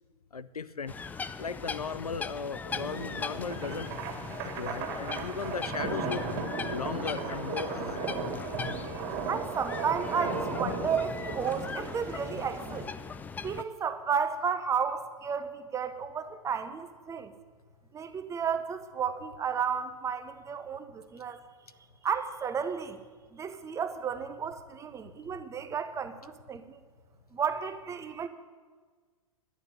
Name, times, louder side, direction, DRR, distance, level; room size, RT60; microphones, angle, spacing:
voice 1, 0.3-0.9 1.4-4.0 4.4-6.2 6.7-8.1, left 5 dB, 90° left, 15 dB, 0.6 m, -37 dB
sound 1, 0.9-13.6, left 5 dB, 10° left, 0.4 m, -40 dB
sound 2, 2.7-12.9, right 3 dB, 45° right, 2.5 m, -36 dB
voice 2, 9.3-12.9 13.4-17.3 17.9-21.4 22.0-23.0 23.3-26.8 27.3-28.3, right 6 dB, 15° right, 10 dB, 0.9 m, -33 dB
11.5 x 9.5 x 8.4 m, 1.5 s
figure-of-eight pair, 110°, 18 cm